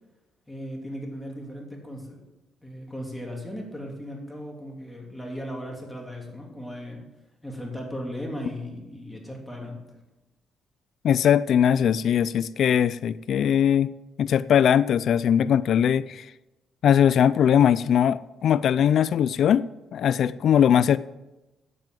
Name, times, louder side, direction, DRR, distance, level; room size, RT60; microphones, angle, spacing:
voice 1, 0.5-2.2 2.6-7.0 7.4-9.8, equal, 5° left, -1 dB, 2.9 m, -37 dB
voice 2, 11.0-13.9 14.2-16.3 16.8-19.7 19.9-21.0, left 9 dB, 65° left, 17 dB, 0.3 m, -20 dB
9.3 x 7.5 x 7.6 m, 1.0 s
cardioid pair, 100°, 0 cm